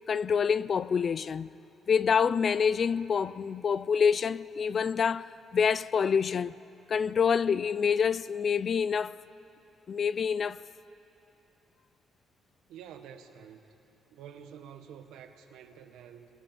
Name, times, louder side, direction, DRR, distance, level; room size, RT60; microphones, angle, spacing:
voice 1, 0.1-1.5 1.9-6.5 6.9-9.1 9.9-10.6, left 6 dB, 50° left, 0.5 m, -27 dB
voice 2, 12.7-13.8 14.1-16.3, right 8 dB, 90° right, 1.5 m, -48 dB
27.0 x 23.0 x 5.3 m
cardioid pair, 90°, 0 cm